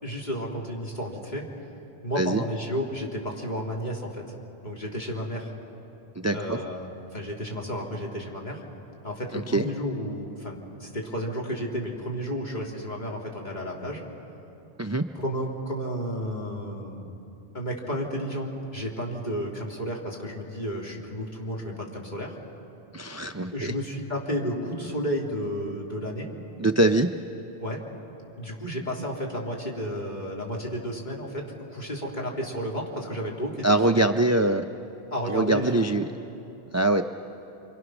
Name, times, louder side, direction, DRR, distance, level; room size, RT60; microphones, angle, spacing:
voice 1, 0.0-1.5 2.0-4.2 4.6-5.5 6.3-8.6 9.0-14.0 15.1-17.1 17.5-22.4 23.5-26.3 27.6-27.8 28.4-34.0 35.1-35.9, equal, 40° left, -2 dB, 3.2 m, -32 dB
voice 2, 6.2-6.6 9.5-9.7 14.8-15.0 22.9-23.7 26.6-27.1 33.6-34.7 35.3-36.0 36.7-37.0, right 2 dB, 25° right, 7 dB, 0.3 m, -23 dB
27.0 x 25.0 x 6.2 m, 2.8 s
omnidirectional pair, 1.2 m